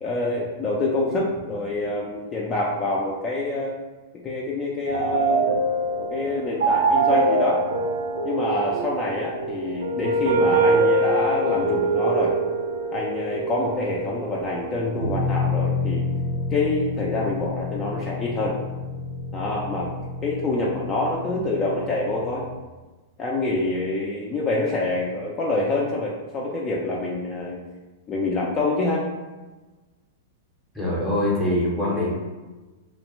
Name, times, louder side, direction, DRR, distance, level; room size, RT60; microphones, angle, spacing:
voice 1, 0.0-3.7 4.1-5.4 6.1-7.6 8.2-12.3 12.9-16.0 16.5-18.6 19.3-19.9 20.2-22.5 23.2-27.6 28.1-29.1, left 2 dB, 25° left, -4 dB, 0.4 m, -26 dB
sound 1, 4.9-22.5, right 2 dB, 80° right, 0.5 m, -25 dB
voice 2, 30.7-32.1, left 1 dB, 5° right, -7 dB, 0.7 m, -23 dB
2.4 x 2.1 x 3.0 m, 1.2 s
hypercardioid pair, 115°, 0 cm